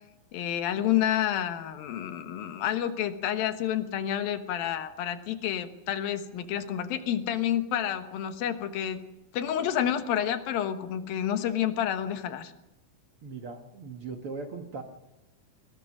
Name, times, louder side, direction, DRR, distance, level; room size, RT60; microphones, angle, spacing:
voice 1, 0.3-9.1 9.3-12.5, left 10 dB, 85° left, 8 dB, 3.1 m, -29 dB
voice 2, 13.2-14.8, right 4 dB, 50° right, 4 dB, 1.8 m, -39 dB
22.5 x 20.5 x 6.2 m, 0.95 s
omnidirectional pair, 4.1 m